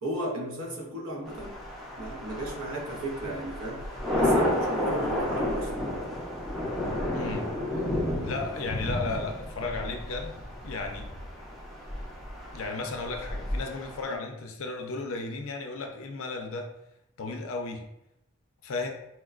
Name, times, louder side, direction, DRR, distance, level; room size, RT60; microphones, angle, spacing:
voice 1, 0.0-1.6 2.0-3.9 4.2-5.7 14.1-14.2, right 1 dB, 75° right, 0 dB, 0.7 m, -35 dB
sound 1, 1.2-14.1, left 1 dB, ahead, 0.5 m, -32 dB
voice 2, 7.1-7.5 7.8-11.0 12.5-16.7 17.2-17.8 18.6-18.9, left 3 dB, 65° left, 3 dB, 0.5 m, -34 dB
4.4 x 2.2 x 2.4 m, 0.84 s
head